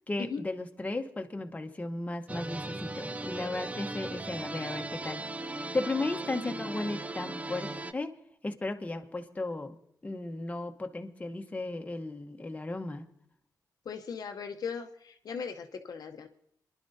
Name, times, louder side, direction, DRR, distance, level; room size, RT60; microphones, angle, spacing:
voice 1, 0.1-5.2 5.7-8.1 8.4-9.8 10.0-13.0, left 2 dB, 20° left, 4 dB, 0.9 m, -35 dB
sound 1, 2.3-7.9, right 2 dB, 20° right, 0.4 m, -38 dB
voice 2, 13.9-14.9 15.2-16.3, left 6 dB, 70° left, 5 dB, 0.7 m, -38 dB
27.0 x 11.0 x 2.7 m, 0.70 s
wide cardioid pair, 100°, 7 cm